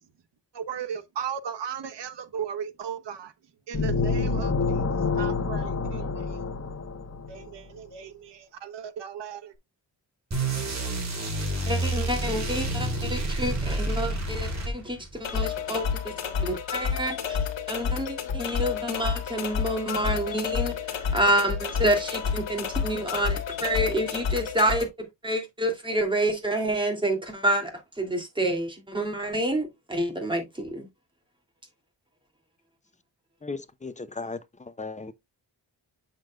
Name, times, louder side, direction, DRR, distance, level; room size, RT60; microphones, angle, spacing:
voice 1, 0.5-3.3 3.7-4.8 5.1-6.4 7.3-9.5, right 8 dB, 70° right, 1.1 m, -36 dB
sound 1, 3.7-7.5, left 4 dB, 35° left, 1.2 m, -27 dB
sound 2, 10.3-15.1, right 2 dB, 35° right, 3.4 m, -29 dB
voice 2, 11.7-17.4 17.7-30.9, right 1 dB, 10° right, 2.6 m, -28 dB
sound 3, 15.2-24.8, left 6 dB, 80° left, 1.6 m, -30 dB
voice 3, 33.4-35.1, left 3 dB, 15° left, 0.6 m, -36 dB
7.5 x 6.8 x 2.3 m
wide cardioid pair, 120°, 44 cm